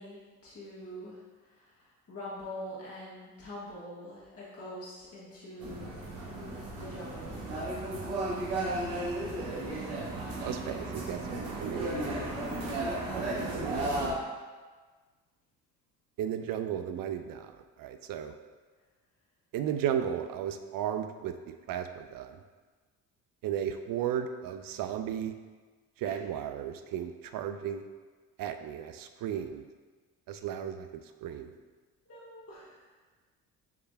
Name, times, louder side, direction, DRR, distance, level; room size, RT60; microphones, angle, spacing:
voice 1, 0.0-5.9 6.3-7.5 11.8-12.9 26.0-26.2 32.0-32.8, left 1 dB, 35° left, -8 dB, 1.4 m, -45 dB
sound 1, 5.6-14.1, right 1 dB, 90° right, 1.1 m, -34 dB
voice 2, 10.4-12.3 13.1-13.9 16.2-17.5 17.8-18.3 19.5-22.4 23.4-25.3 26.0-27.8 28.4-29.6 30.3-31.5, right 9 dB, 55° right, 8 dB, 0.5 m, -35 dB
7.1 x 3.3 x 2.2 m, 1.4 s
supercardioid pair, 70°, 40 cm